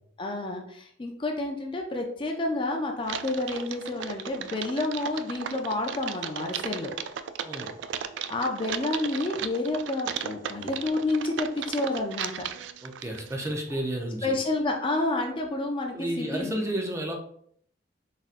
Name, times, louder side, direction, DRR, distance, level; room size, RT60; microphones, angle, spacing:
voice 1, 0.2-6.9 8.3-12.5 14.2-16.6, left 2 dB, 30° left, 2 dB, 0.4 m, -29 dB
Typing, 3.0-13.5, right 8 dB, 75° right, 0.3 m, -36 dB
voice 2, 12.8-14.3 15.9-17.1, right 1 dB, 15° right, 2 dB, 0.6 m, -31 dB
4.1 x 3.8 x 2.5 m, 0.64 s
head